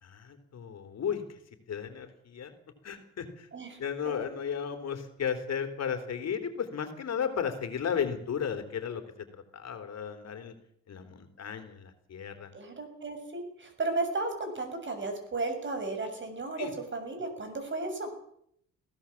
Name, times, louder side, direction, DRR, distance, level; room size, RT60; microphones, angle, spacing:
voice 1, 0.0-1.4 1.7-2.5 2.8-3.5 3.8-10.5 10.9-12.5 16.6-16.7, left 7 dB, 60° left, 7 dB, 3.4 m, -34 dB
voice 2, 12.5-18.1, right 3 dB, 40° right, 7 dB, 6.6 m, -34 dB
22.5 x 16.5 x 7.3 m, 0.69 s
cardioid pair, 90°, 30 cm